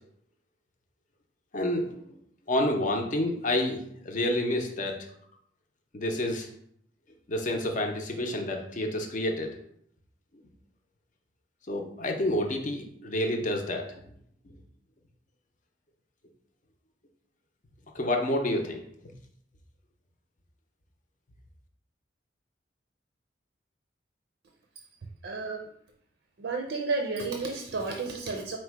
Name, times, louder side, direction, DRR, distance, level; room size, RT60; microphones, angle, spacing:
voice 1, 1.5-2.1 2.5-5.0 5.9-6.5 7.3-9.6 11.7-13.9 17.9-18.8, left 1 dB, 45° left, 3 dB, 0.6 m, -29 dB
voice 2, 25.2-25.7 26.4-28.6, right 3 dB, 70° right, 2 dB, 0.5 m, -32 dB
4.4 x 2.1 x 4.5 m, 0.68 s
head